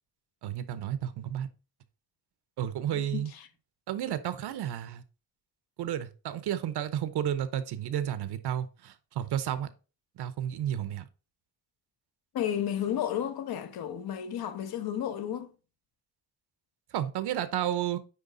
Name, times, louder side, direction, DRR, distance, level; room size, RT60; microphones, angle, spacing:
voice 1, 0.4-1.5 2.6-3.3 3.9-5.0 5.8-9.7 10.2-11.1 16.9-18.0, right 10 dB, 80° right, 0.8 m, -32 dB
voice 2, 2.9-3.5 12.3-15.5, left 10 dB, 70° left, 1.0 m, -32 dB
9.6 x 3.4 x 3.9 m
cardioid pair, 145°, 38 cm